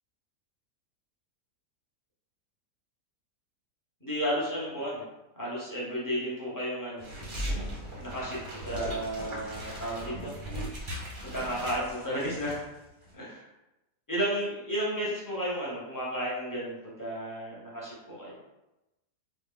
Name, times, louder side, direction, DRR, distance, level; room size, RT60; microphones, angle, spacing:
voice 1, 4.0-5.0 5.4-7.0 8.0-10.3 11.3-12.6 13.1-13.4 14.1-18.3, equal, 15° left, -6 dB, 0.7 m, -33 dB
sound 1, 7.0-12.6 12.9-13.1, equal, 40° right, 0.7 m, -38 dB
3.3 x 2.4 x 3.6 m, 0.96 s
omnidirectional pair, 1.7 m